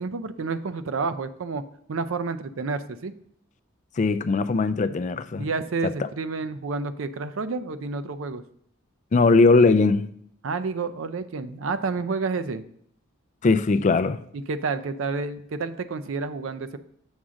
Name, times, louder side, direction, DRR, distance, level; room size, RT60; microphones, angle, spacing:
voice 1, 0.0-1.6 1.9-3.1 5.4-8.4 10.4-12.6 14.3-16.8, right 4 dB, 65° right, 0.5 m, -29 dB
voice 2, 4.0-5.5 5.8-6.1 9.1-10.1 13.4-14.2, left 3 dB, 35° left, 0.3 m, -20 dB
7.2 x 3.7 x 6.2 m
head